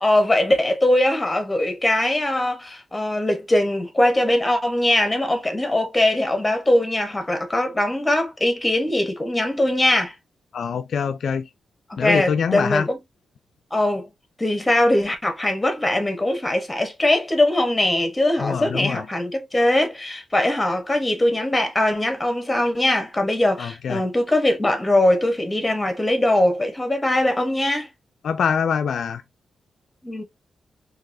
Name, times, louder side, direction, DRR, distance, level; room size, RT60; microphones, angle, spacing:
voice 1, 0.0-10.1 11.9-13.0 13.7-14.1 14.4-27.9 30.0-30.2, left 1 dB, 15° left, 1.1 m, -21 dB
voice 2, 10.5-11.5 12.0-12.9 18.4-19.0 23.6-24.0 28.2-29.2, left 6 dB, 70° left, 0.3 m, -24 dB
3.9 x 2.8 x 2.6 m
cardioid pair, 100°, 0 cm